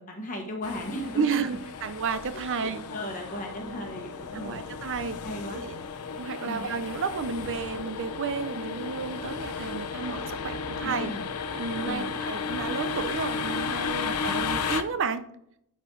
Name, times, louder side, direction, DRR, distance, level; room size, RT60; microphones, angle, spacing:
voice 1, 0.0-1.4 2.6-4.7 5.2-5.6 6.4-6.7 10.8-11.3 11.8-12.1 14.0-14.4, left 1 dB, 35° left, 1 dB, 1.4 m, -36 dB
sound 1, 0.6-14.8, left 5 dB, 85° left, 0.7 m, -34 dB
voice 2, 1.1-2.8 4.3-5.2 5.5-5.8 6.1-11.1 11.6-15.2, right 5 dB, 55° right, 12 dB, 0.6 m, -32 dB
9.6 x 4.4 x 3.8 m, 0.74 s
head